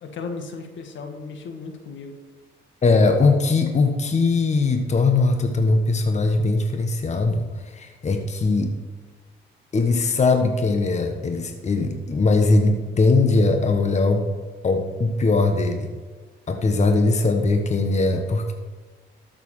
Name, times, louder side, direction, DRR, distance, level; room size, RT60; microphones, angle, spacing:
voice 1, 0.0-2.2, left 4 dB, 70° left, 5 dB, 1.8 m, -35 dB
voice 2, 2.8-8.8 9.7-14.3 14.6-15.9 16.5-18.5, left 3 dB, 35° left, 5 dB, 1.3 m, -20 dB
13.0 x 6.9 x 4.9 m, 1.4 s
cardioid pair, 90°, 20 cm